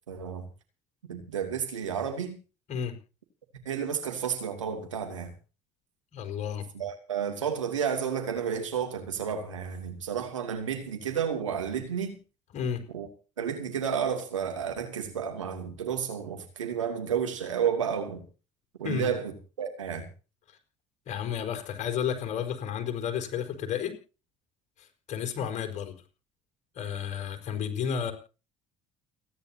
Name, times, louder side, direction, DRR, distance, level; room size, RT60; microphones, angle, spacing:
voice 1, 0.1-0.4 1.1-2.4 3.6-5.3 6.7-12.2 12.9-13.1 13.4-18.2 18.8-19.3 19.6-20.1, right 7 dB, 90° right, 2.8 m, -31 dB
voice 2, 6.1-6.6 12.5-12.8 18.8-19.1 21.1-23.9 24.8-25.9 26.7-28.1, left 8 dB, 50° left, 4.9 m, -32 dB
29.5 x 10.5 x 2.9 m
hypercardioid pair, 60°, 16 cm